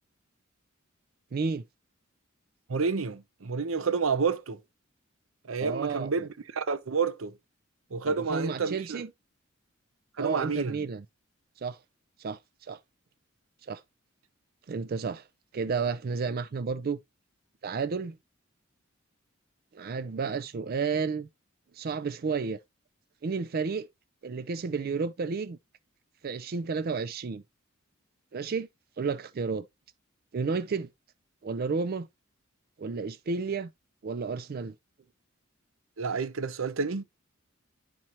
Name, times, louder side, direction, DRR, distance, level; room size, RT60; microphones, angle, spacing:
voice 1, 1.3-1.6 5.6-6.1 8.0-9.1 10.2-11.0 11.6-11.8 12.2-12.4 12.7-12.8 13.7-13.8 14.7-15.3 15.5-17.0 17.6-18.2 19.7-21.3 21.7-22.6 23.2-23.9 24.2-25.6 26.2-27.4 28.3-28.7 29.0-29.7 30.3-30.9 31.4-32.1 32.8-33.7 34.0-34.7, right 5 dB, 50° right, 0.4 m, -31 dB
voice 2, 2.7-4.6 5.5-7.3 7.9-9.0 10.2-10.8 36.0-37.0, right 5 dB, 85° right, 0.7 m, -29 dB
11.0 x 4.4 x 2.9 m
head